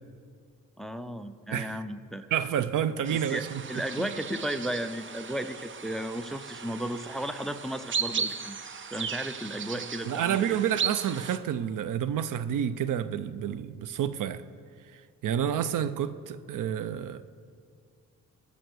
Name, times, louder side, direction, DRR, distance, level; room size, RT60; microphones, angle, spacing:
voice 1, 0.8-2.2 3.1-3.4 3.7-8.6 8.9-10.6, right 1 dB, ahead, 0.5 m, -34 dB
voice 2, 1.5-1.8 2.3-4.1 10.0-14.4 14.9-17.3, right 9 dB, 80° right, 0.6 m, -29 dB
sound 1, 3.0-11.4, right 6 dB, 40° right, 0.6 m, -36 dB
19.0 x 7.0 x 6.3 m
wide cardioid pair, 125°, 31 cm